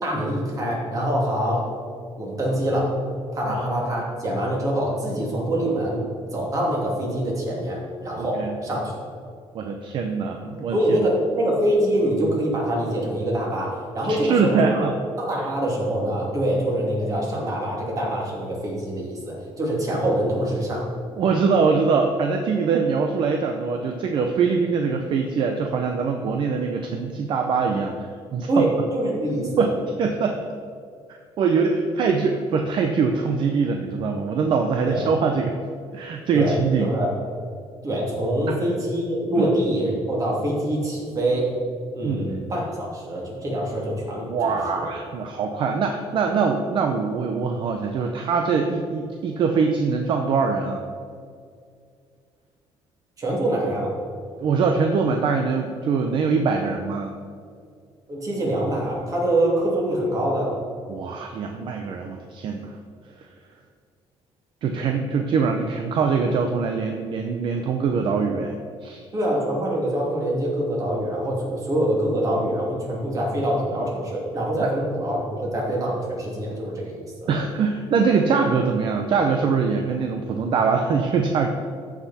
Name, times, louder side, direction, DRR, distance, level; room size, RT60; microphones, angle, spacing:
voice 1, 0.0-1.7 2.2-2.9 3.3-6.1 6.3-8.9 10.7-14.9 15.2-20.9 28.5-29.7 34.8-35.1 36.3-37.2 37.8-41.5 41.9-44.9 53.2-53.9 58.1-60.6 69.1-77.3, right 1 dB, 35° right, -3 dB, 2.7 m, -25 dB
voice 2, 8.2-8.6 9.5-11.0 14.0-14.9 21.2-27.9 28.3-28.7 29.6-29.7 30.0-30.4 31.4-35.6 35.9-36.9 38.5-38.6 39.4-39.5 42.0-42.2 44.3-50.8 54.4-57.1 60.9-62.8 64.6-69.1 74.6-74.7 77.3-81.5, right 5 dB, 50° right, 4 dB, 0.7 m, -23 dB
14.0 x 5.9 x 4.3 m, 2.2 s
cardioid pair, 140°, 10 cm